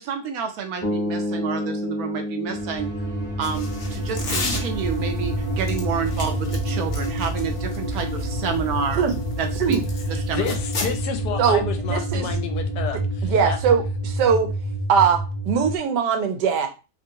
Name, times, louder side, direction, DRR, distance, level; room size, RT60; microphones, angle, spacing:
voice 1, 0.0-2.9 3.4-9.0 9.4-9.8 10.1-10.5, right 6 dB, 70° right, 5 dB, 1.0 m, -29 dB
sound 1, 0.8-5.0, left 1 dB, 15° left, 0.6 m, -30 dB
sound 2, 2.5-15.8, right 1 dB, 35° right, 0.7 m, -28 dB
sound 3, 3.4-5.0 5.6-10.1 10.4-11.0, left 3 dB, 55° left, 0.6 m, -32 dB
voice 2, 10.3-13.6, left 7 dB, 80° left, 6 dB, 1.2 m, -30 dB
voice 3, 11.4-12.3 13.2-14.5 14.9-16.7, right 6 dB, 90° right, 6 dB, 1.2 m, -21 dB
3.0 x 2.6 x 2.7 m, 0.31 s
omnidirectional pair, 1.8 m